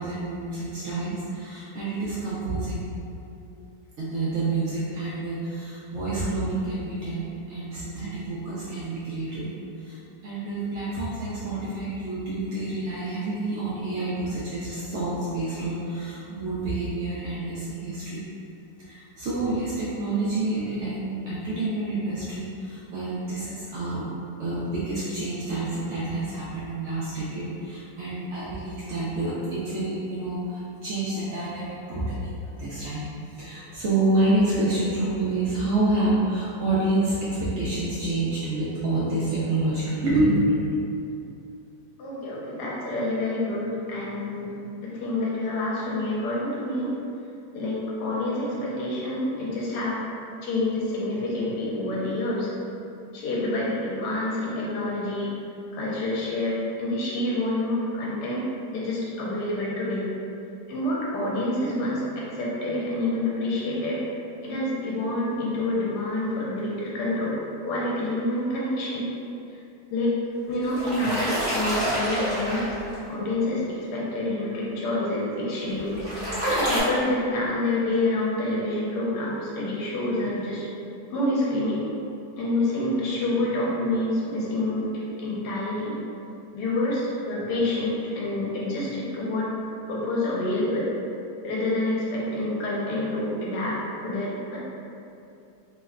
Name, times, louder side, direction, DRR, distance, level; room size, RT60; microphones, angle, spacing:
voice 1, 0.0-2.8 4.0-9.5 9.8-10.0 10.2-18.2 18.8-24.1 24.4-32.3 32.6-33.1 33.4-41.0, right 2 dB, 75° right, -9 dB, 0.6 m, -28 dB
voice 2, 42.0-46.9 47.5-50.0 50.4-52.5 53.1-55.4 55.7-60.1 60.7-64.0 64.4-67.4 67.6-69.1 69.5-69.6 69.9-70.1 70.5-72.7 73.1-76.1 76.7-80.7 81.1-81.9 82.4-85.9 86.5-89.5 89.9-90.9 91.4-94.6, left 1 dB, 75° left, -5 dB, 1.2 m, -27 dB
sound 1, 70.5-73.0 75.6-76.8, equal, 20° right, 0.6 m, -27 dB
3.1 x 2.1 x 3.5 m, 2.7 s
omnidirectional pair, 1.8 m